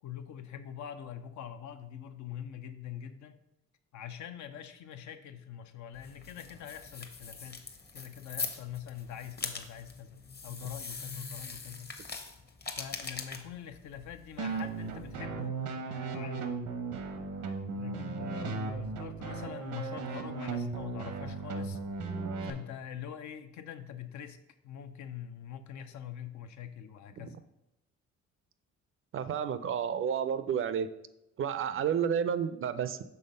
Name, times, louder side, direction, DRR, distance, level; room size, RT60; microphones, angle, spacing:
voice 1, 0.0-3.4 3.9-7.6 7.9-11.9 12.8-15.6 16.1-16.6 17.7-21.8 22.4-24.4 24.6-27.4, left 9 dB, 70° left, 8 dB, 0.6 m, -44 dB
sound 1, 5.9-15.2, left 4 dB, 35° left, 0.8 m, -42 dB
sound 2, 14.4-22.5, right 4 dB, 85° right, 0.8 m, -36 dB
voice 2, 29.1-30.9 31.4-33.0, right 8 dB, 45° right, 12 dB, 0.4 m, -31 dB
5.6 x 3.6 x 5.3 m, 0.88 s
cardioid pair, 90°, 30 cm